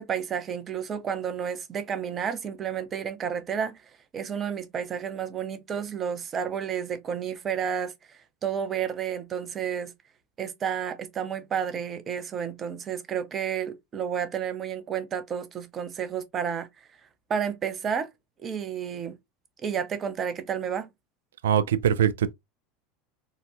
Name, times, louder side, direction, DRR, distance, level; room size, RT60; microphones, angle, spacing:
voice 1, 0.0-3.8 4.1-7.9 8.4-9.9 10.4-16.7 17.3-18.1 18.4-19.2 19.6-20.9, right 7 dB, 35° right, 0.7 m, -31 dB
voice 2, 21.4-22.3, right 9 dB, 80° right, 0.3 m, -22 dB
4.0 x 2.2 x 2.5 m
hypercardioid pair, 85°, 0 cm